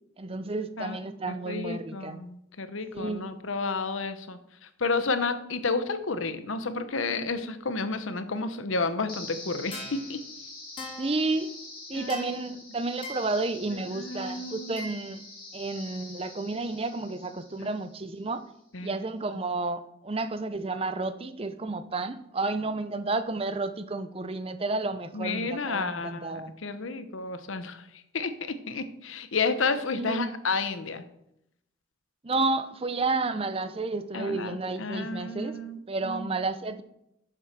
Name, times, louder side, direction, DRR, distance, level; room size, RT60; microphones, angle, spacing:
voice 1, 0.2-2.3 2.9-3.3 11.0-11.5 11.9-15.2 15.5-18.4 18.8-26.5 29.9-30.3 32.2-35.6 35.9-36.8, right 3 dB, 30° right, 11 dB, 0.6 m, -31 dB
voice 2, 1.5-4.4 4.8-10.2 11.9-12.4 13.9-14.8 17.6-17.7 18.7-18.9 25.1-27.9 28.1-31.0 34.1-36.3, left 4 dB, 80° left, 11 dB, 0.9 m, -31 dB
sound 1, 9.1-18.1, left 2 dB, 25° left, 3.6 m, -43 dB
7.9 x 7.2 x 6.0 m, 0.79 s
head